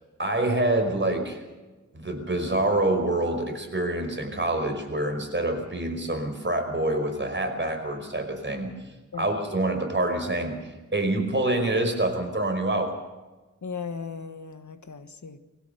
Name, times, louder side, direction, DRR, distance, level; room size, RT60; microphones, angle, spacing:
voice 1, 0.2-1.4 1.9-8.7 9.2-13.0, right 2 dB, 40° right, 4 dB, 5.2 m, -26 dB
voice 2, 13.6-15.4, left 5 dB, 75° left, 9 dB, 1.5 m, -37 dB
24.5 x 16.5 x 7.0 m, 1.2 s
wide cardioid pair, 70°, 29 cm